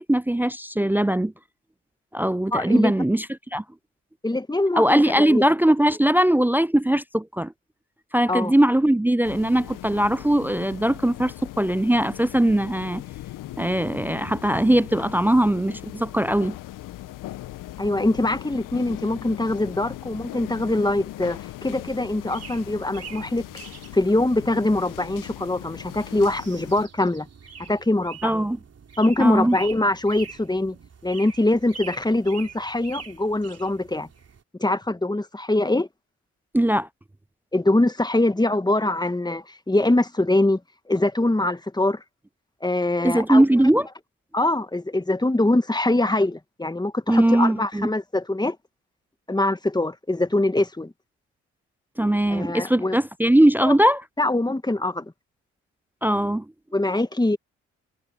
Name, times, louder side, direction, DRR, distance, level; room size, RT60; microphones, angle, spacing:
voice 1, 0.0-1.3 2.1-3.3 3.5-3.6 4.8-7.5 8.1-13.0 13.6-16.5 28.2-28.6 29.2-29.6 36.5-36.9 43.0-43.9 47.1-47.9 52.0-54.0 56.0-56.4, right 1 dB, 5° right, 0.4 m, -20 dB
voice 2, 2.5-2.9 4.2-5.4 8.3-8.5 17.8-23.4 23.9-27.3 27.6-28.5 29.0-30.7 31.0-34.1 34.6-35.9 37.5-40.6 40.9-42.0 42.6-43.4 44.3-48.6 49.3-50.9 52.3-53.0 53.6-53.7 54.2-55.1 56.7-57.4, left 2 dB, 10° left, 1.9 m, -23 dB
sound 1, 9.2-26.9, left 15 dB, 70° left, 1.8 m, -39 dB
sound 2, 22.1-34.4, right 6 dB, 45° right, 3.7 m, -45 dB
hypercardioid pair, 40°, 33 cm